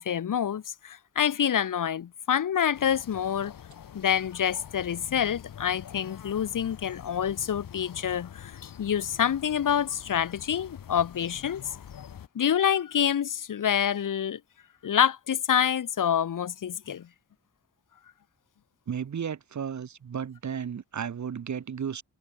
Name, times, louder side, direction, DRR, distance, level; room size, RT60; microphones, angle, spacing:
voice 1, 0.0-3.5 3.9-11.6 12.3-14.4 14.8-17.1, left 9 dB, 70° left, 1.0 m, -27 dB
sound 1, 2.7-12.3, left 9 dB, 90° left, 1.6 m, -46 dB
voice 2, 18.9-22.0, right 7 dB, 60° right, 1.3 m, -34 dB
wide cardioid pair, 120°, 33 cm